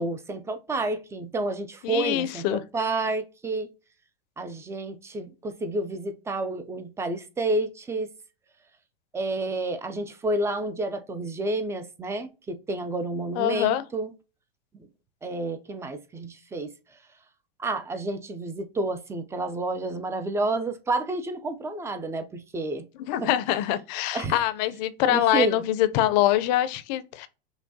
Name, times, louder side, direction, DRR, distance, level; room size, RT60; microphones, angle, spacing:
voice 1, 0.0-3.7 4.4-8.1 9.1-14.1 15.2-16.7 17.6-22.9 23.2-23.3 24.1-24.3 25.1-25.6, right 2 dB, 10° right, 0.4 m, -30 dB
voice 2, 1.8-2.6 13.3-13.8 23.1-27.3, left 13 dB, 45° left, 0.6 m, -24 dB
5.8 x 2.2 x 2.7 m
hypercardioid pair, 110°, 31 cm